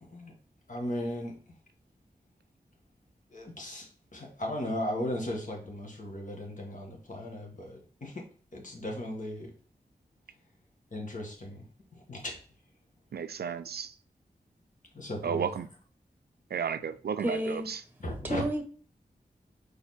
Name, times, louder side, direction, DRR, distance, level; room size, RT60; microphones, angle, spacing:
voice 1, 0.0-0.3 0.7-1.4 3.3-8.3 8.5-9.5 10.9-11.6 11.9-12.4 14.9-15.5 18.0-18.4, left 1 dB, 50° left, 1.8 m, -37 dB
voice 2, 13.1-13.9 15.2-15.7 16.5-17.4, right 7 dB, 75° right, 0.4 m, -32 dB
voice 3, 17.2-17.7 18.2-18.6, equal, 10° right, 1.3 m, -30 dB
5.1 x 4.4 x 4.2 m
wide cardioid pair, 95°, 16 cm